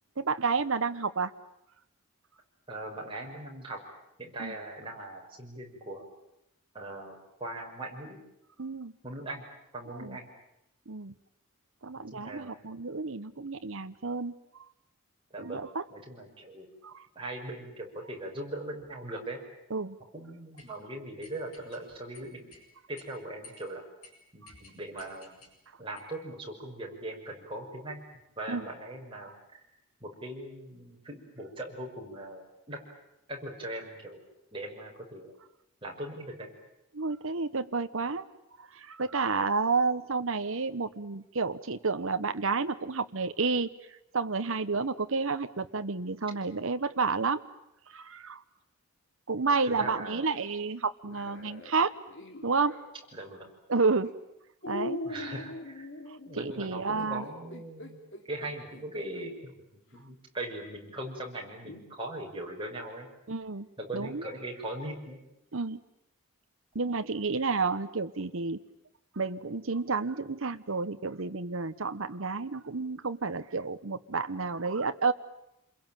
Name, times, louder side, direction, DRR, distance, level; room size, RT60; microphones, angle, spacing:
voice 1, 0.2-1.3 4.4-4.5 8.6-8.9 9.9-10.2 10.9-11.1 11.8-14.3 15.4-15.8 16.8-17.1 19.7-20.0 28.5-28.6 36.9-38.3 38.6-43.7 44.1-47.4 47.9-48.4 49.3-51.9 52.4-52.7 53.7-54.1 54.7-55.0 56.4-57.2 63.3-63.7 63.9-64.3 65.5-65.8 66.7-68.6 69.2-75.1, right 4 dB, 65° right, 9 dB, 1.0 m, -30 dB
voice 2, 2.7-3.8 4.2-6.1 6.7-8.2 9.0-9.4 9.7-10.3 12.0-12.6 15.3-15.6 15.9-16.7 17.1-19.4 20.1-22.6 22.9-23.8 24.3-25.4 25.8-28.0 28.4-29.6 30.0-32.8 33.3-34.2 34.5-35.3 35.8-36.5 49.6-50.3 53.1-53.5 55.0-55.9 56.3-58.0 58.2-59.6 59.9-63.1 63.8-65.2, right 1 dB, 25° right, -1 dB, 5.9 m, -40 dB
sound 1, 20.6-20.7 21.2-21.8 22.1-22.6 23.0-23.1 23.4-23.7 24.0-24.1 24.5-25.5 26.0-26.2, left 3 dB, 85° left, 7.9 m, -53 dB
sound 2, 51.0-52.9 53.8-54.1 54.6-59.3 59.9-60.0 61.7-61.9, left 2 dB, 55° left, 3.0 m, -42 dB
27.5 x 22.0 x 9.1 m, 0.85 s
head